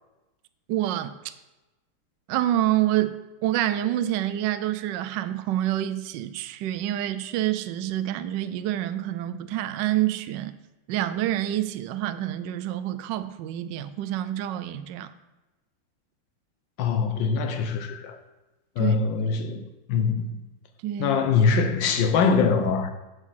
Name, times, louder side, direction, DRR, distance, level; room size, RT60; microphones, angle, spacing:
voice 1, 0.7-1.3 2.3-10.5 10.9-15.1 18.8-19.0 20.8-21.2, right 13 dB, 75° right, 1.0 m, -27 dB
voice 2, 16.8-18.1 18.8-19.6 19.9-20.3 21.0-22.9, left 5 dB, 65° left, 1.5 m, -23 dB
8.1 x 5.4 x 7.4 m
omnidirectional pair, 2.4 m